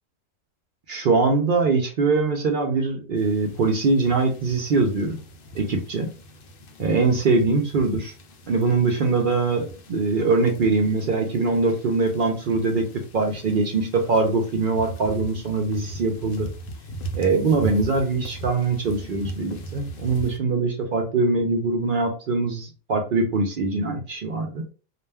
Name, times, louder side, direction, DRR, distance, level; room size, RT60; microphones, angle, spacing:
voice 1, 0.9-5.2 5.5-6.1 6.8-8.1 8.5-12.9 13.1-16.5 17.1-24.6, right 3 dB, 70° right, 2 dB, 0.5 m, -22 dB
sound 1, 3.2-20.4, right 1 dB, 70° left, 0.5 m, -39 dB
2.4 x 2.2 x 3.2 m, 0.35 s
omnidirectional pair, 1.4 m